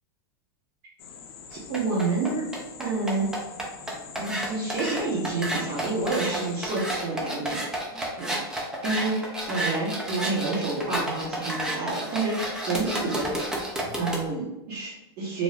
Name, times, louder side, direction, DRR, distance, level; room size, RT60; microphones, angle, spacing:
sound 1, 1.0-6.7, left 6 dB, 80° left, 0.5 m, -45 dB
sound 2, 1.5-14.2, right 1 dB, 5° right, 0.4 m, -31 dB
voice 1, 1.5-2.5 2.8-3.3 4.2-7.6 8.2-8.4 8.8-13.6 14.0-15.4, right 3 dB, 40° right, -7 dB, 0.8 m, -29 dB
2.6 x 2.2 x 3.2 m, 0.94 s
supercardioid pair, 150°, 13 cm